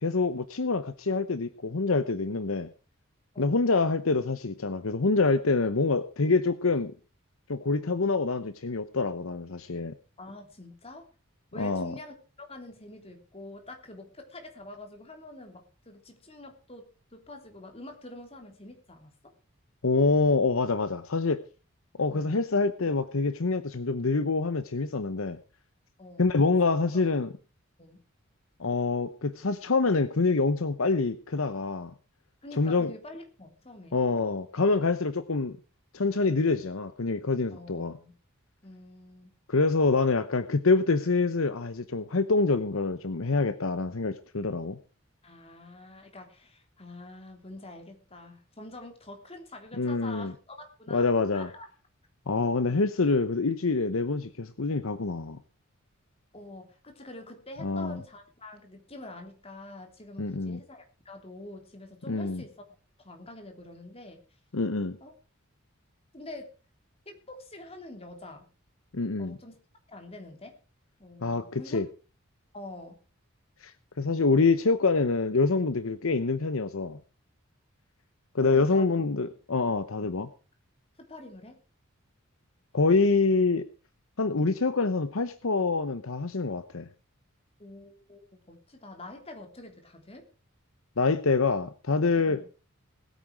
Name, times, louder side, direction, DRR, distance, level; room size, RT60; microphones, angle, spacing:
voice 1, 0.0-2.7 3.4-6.9 7.5-9.9 11.6-11.9 19.8-21.4 22.0-25.4 26.2-27.3 28.6-31.9 32.6-32.9 33.9-35.6 35.9-37.9 39.5-44.8 49.8-50.3 50.9-51.5 52.3-55.4 57.6-58.0 60.2-60.6 62.1-62.4 64.5-65.0 68.9-69.4 71.2-71.9 73.6-73.7 74.0-77.0 78.3-80.3 82.7-83.6 84.2-86.9 91.0-92.4, left 3 dB, 70° left, 13 dB, 0.9 m, -26 dB
voice 2, 10.2-11.1 11.5-19.1 22.1-22.4 26.0-26.3 26.6-26.8 27.8-28.0 32.4-34.0 37.5-38.1 38.6-39.3 45.2-51.7 52.6-52.8 56.3-62.6 63.0-64.2 65.0-65.1 66.1-66.5 67.0-68.5 69.2-69.6 69.9-70.5 71.0-71.8 72.5-73.0 78.4-78.9 81.1-81.6 87.6-90.2 92.3-92.5, left 2 dB, 30° left, 4 dB, 3.3 m, -46 dB
20.0 x 9.0 x 4.7 m, 0.35 s
head